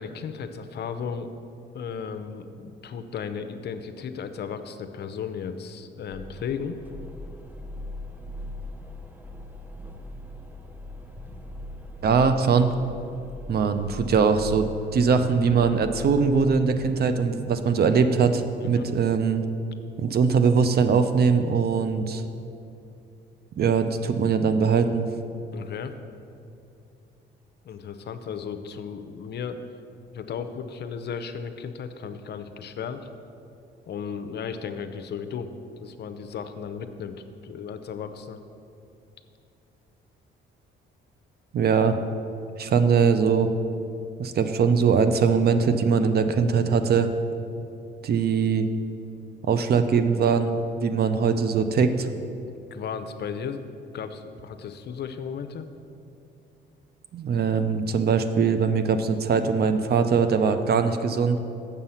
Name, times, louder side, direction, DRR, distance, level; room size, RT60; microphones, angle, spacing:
voice 1, 0.0-1.3 1.7-6.8 18.6-18.9 25.5-25.9 27.6-29.6 30.1-33.0 33.9-35.5 35.8-38.4 52.5-53.6 53.9-55.7, left 6 dB, 55° left, 9 dB, 0.6 m, -35 dB
sound 1, 6.1-16.6, left 1 dB, 10° right, 0.7 m, -40 dB
voice 2, 12.0-12.7 13.5-19.4 20.0-22.2 23.6-25.1 41.5-42.0 42.6-43.5 44.2-47.1 48.0-48.7 49.4-52.1 57.1-61.4, right 5 dB, 55° right, 9 dB, 0.6 m, -21 dB
7.3 x 6.8 x 5.6 m, 2.6 s
cardioid pair, 90°, 20 cm